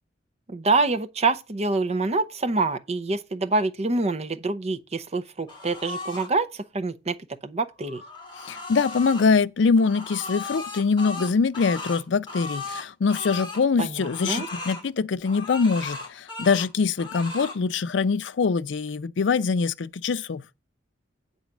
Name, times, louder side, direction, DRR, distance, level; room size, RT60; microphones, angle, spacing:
voice 1, 0.5-7.2 7.4-8.0 13.8-14.5, right 3 dB, 35° right, 0.7 m, -26 dB
sound 1, 5.5-6.3 7.7-9.3 9.8-13.6 14.0-14.8 15.2-16.7 17.0-17.6, left 3 dB, 25° left, 1.9 m, -36 dB
voice 2, 8.4-20.4, left 5 dB, 75° left, 0.5 m, -23 dB
8.9 x 4.0 x 7.1 m
head